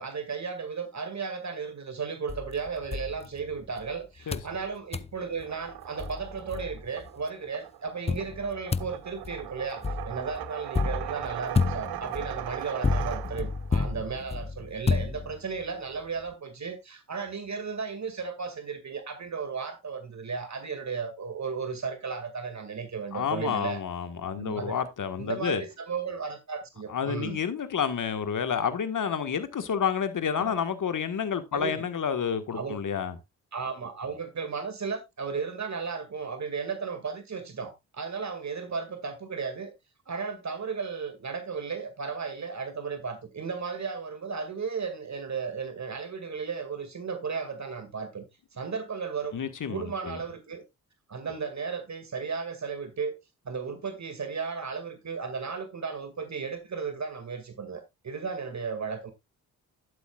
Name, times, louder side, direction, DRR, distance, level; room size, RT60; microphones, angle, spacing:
voice 1, 0.0-23.8 24.3-24.8 25.2-27.4 30.3-30.5 31.5-31.9 32.5-32.8 33.5-39.7 40.1-48.2 48.5-49.4 49.7-50.6 51.1-53.1 53.4-59.1, right 5 dB, 45° right, 2.1 m, -35 dB
sound 1, 2.3-3.9 4.3-4.6 4.9-5.2 5.7-5.8 6.0-7.1 8.1-15.7, left 4 dB, 15° left, 0.4 m, -31 dB
sound 2, 5.4-13.7, right 14 dB, 70° right, 0.8 m, -39 dB
voice 2, 23.1-25.6 26.9-33.2 49.3-50.2, left 7 dB, 50° left, 1.5 m, -29 dB
11.5 x 8.3 x 2.3 m
hypercardioid pair, 45°, 40 cm